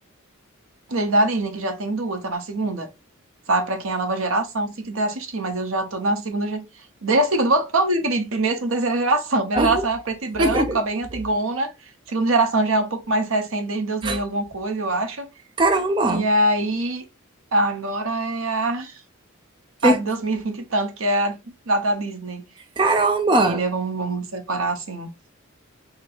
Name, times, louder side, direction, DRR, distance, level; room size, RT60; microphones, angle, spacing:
voice 1, 0.9-2.9 3.5-6.7 7.0-11.7 12.1-15.3 16.1-17.0 17.5-18.9 19.8-21.4 21.7-22.4 23.4-25.1, right 2 dB, 75° right, 0.8 m, -23 dB
voice 2, 10.4-10.8 14.0-14.2 15.6-16.3 19.8-20.0 22.8-23.6, right 2 dB, 20° right, 0.3 m, -20 dB
2.9 x 2.6 x 4.2 m
head